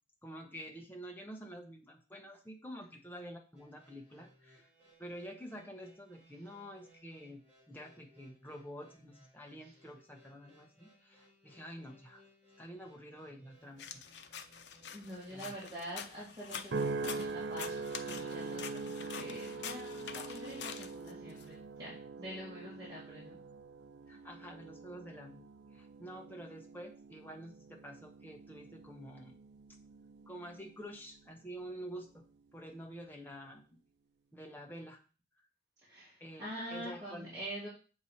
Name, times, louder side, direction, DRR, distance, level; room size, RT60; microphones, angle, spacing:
voice 1, 0.2-4.7 5.0-7.4 7.7-12.2 12.6-14.0 15.3-15.5 24.1-25.5 25.7-29.4 30.3-32.2 32.5-33.6 34.3-35.0 36.2-36.4 36.7-37.4, equal, 10° left, 1 dB, 1.0 m, -48 dB
sound 1, 3.5-16.0, right 1 dB, 5° right, 2.7 m, -65 dB
sound 2, 13.8-21.4, left 7 dB, 85° left, 0.6 m, -46 dB
voice 2, 14.9-23.4 35.8-37.7, equal, 25° right, -9 dB, 2.3 m, -46 dB
sound 3, 16.7-31.2 31.7-32.1, right 3 dB, 80° right, 0.4 m, -43 dB
7.1 x 4.8 x 4.2 m, 0.36 s
head